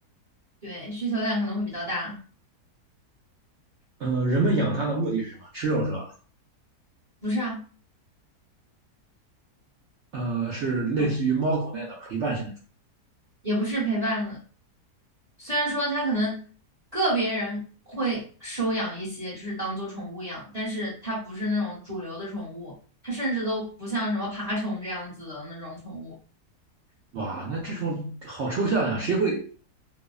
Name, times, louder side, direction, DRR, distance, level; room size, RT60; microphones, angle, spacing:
voice 1, 0.6-2.2 7.2-7.6 11.0-11.1 13.4-14.4 15.4-16.4 16.9-22.8 23.0-26.1, right 1 dB, 30° right, 0.7 m, -29 dB
voice 2, 4.0-6.1 10.1-12.5 27.1-29.5, right 3 dB, 75° right, 0.6 m, -26 dB
2.7 x 2.0 x 2.3 m
omnidirectional pair, 1.7 m